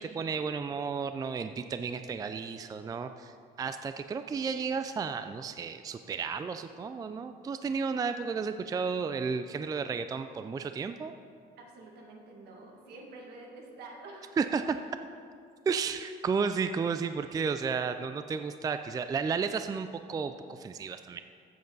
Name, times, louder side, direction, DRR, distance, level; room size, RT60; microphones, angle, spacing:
voice 1, 0.0-11.1 14.4-14.8 15.7-21.2, right 5 dB, 20° right, 9 dB, 0.3 m, -33 dB
voice 2, 11.6-14.4 14.9-15.1, right 2 dB, 75° right, 0 dB, 2.0 m, -48 dB
14.0 x 7.7 x 4.0 m, 2.3 s
cardioid pair, 110°, 17 cm